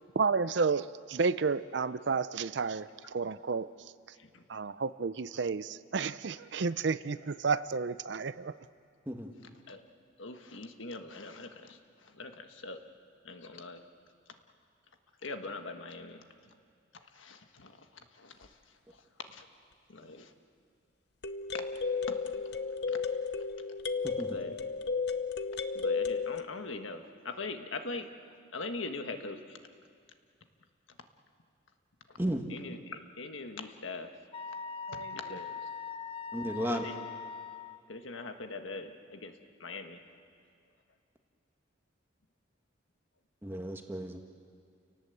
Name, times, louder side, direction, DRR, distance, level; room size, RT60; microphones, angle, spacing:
voice 1, 0.2-3.7 4.5-8.6 34.9-35.1, right 4 dB, 60° right, 15 dB, 0.5 m, -31 dB
voice 2, 10.2-11.8 12.1-12.8 13.2-13.8 15.2-16.2 17.1-17.8 18.2-18.5 19.3-19.4 19.9-20.3 21.5-21.6 22.9-23.0 24.3-24.5 25.7-28.1 28.5-29.6 32.5-34.1 35.1-35.6 36.7-36.9 37.9-39.3 39.6-40.0, left 3 dB, 75° left, 6 dB, 1.5 m, -42 dB
sound 1, 18.4-18.5 21.2-26.4, left 5 dB, 55° left, 0.9 m, -33 dB
voice 3, 24.0-24.4 32.2-32.4 36.3-36.9 43.4-44.2, equal, 10° right, 3 dB, 1.5 m, -34 dB
Wind instrument woodwind instrument, 34.3-37.8, left 6 dB, 25° left, 0.6 m, -41 dB
29.5 x 18.5 x 7.9 m, 2.2 s
head